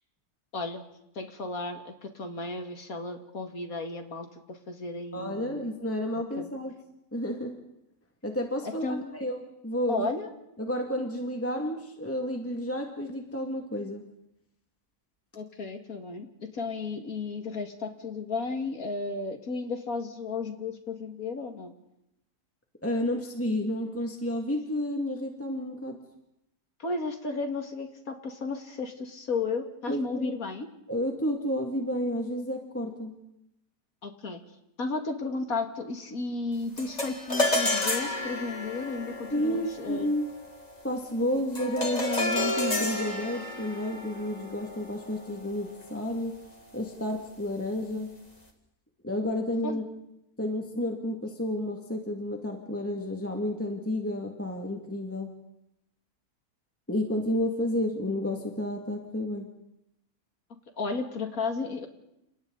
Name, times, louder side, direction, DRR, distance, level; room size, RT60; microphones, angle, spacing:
voice 1, 1.2-5.7 6.4-6.5 8.8-9.2 9.9-10.3 15.3-16.3 16.5-21.7 26.8-30.7 34.0-34.4 34.8-40.1 49.6-49.8 60.8-61.9, left 3 dB, 60° left, 5 dB, 2.7 m, -34 dB
voice 2, 5.1-6.7 7.1-7.5 8.2-9.4 9.6-10.1 10.6-14.0 22.8-26.0 29.9-30.3 30.9-33.1 39.3-40.3 40.8-46.4 46.7-48.1 49.0-49.8 50.4-55.3 56.9-59.5, left 1 dB, 10° left, 2 dB, 2.2 m, -31 dB
sound 1, 36.8-46.3, left 2 dB, 25° left, 2.6 m, -32 dB
30.0 x 27.0 x 4.1 m, 0.84 s
omnidirectional pair, 1.7 m